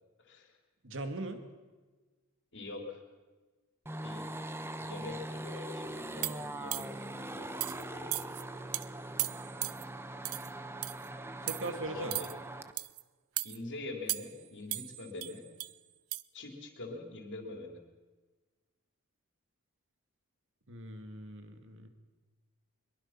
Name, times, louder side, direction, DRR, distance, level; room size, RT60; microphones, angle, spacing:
voice 1, 0.2-0.6 2.5-3.0 4.0-4.3 4.8-7.1 7.3-8.4 11.8-12.3 13.4-15.4 16.3-17.8, left 3 dB, 55° left, 3 dB, 3.6 m, -44 dB
voice 2, 0.8-1.4 11.4-12.2 20.7-21.9, right 2 dB, 60° right, 7 dB, 2.4 m, -40 dB
sound 1, 3.9-12.7, right 1 dB, 10° right, 0.9 m, -41 dB
sound 2, 6.2-7.1 7.6-7.8 8.1-8.4 8.7-8.9 9.2-9.8 10.3-10.5 10.8-11.1 11.5-11.7 12.1-12.3 12.8-13.0 13.4-13.6 14.1-14.4 14.7-15.7 16.1-16.2, right 18 dB, 80° right, 0.6 m, -36 dB
23.0 x 22.5 x 6.0 m, 1.3 s
head